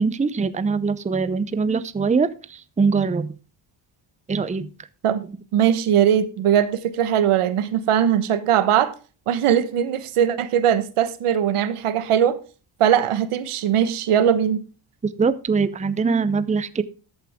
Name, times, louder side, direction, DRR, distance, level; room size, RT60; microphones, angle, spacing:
voice 1, 0.0-3.4 4.3-4.7 15.2-16.8, right 4 dB, 15° right, 0.6 m, -22 dB
voice 2, 5.5-8.9 9.3-12.4 12.8-14.6, right 9 dB, 85° right, 1.3 m, -20 dB
13.5 x 8.8 x 3.6 m
cardioid pair, 115°, 50 cm